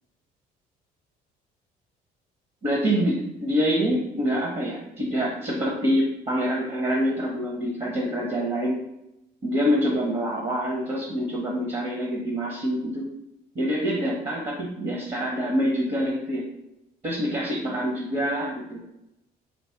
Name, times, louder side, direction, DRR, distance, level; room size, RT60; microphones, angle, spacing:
voice 1, 2.6-8.8 9.4-13.1 13.5-16.4 17.0-18.8, equal, 35° right, -2 dB, 1.0 m, -26 dB
4.0 x 2.1 x 4.5 m, 0.87 s
cardioid pair, 110°, 17 cm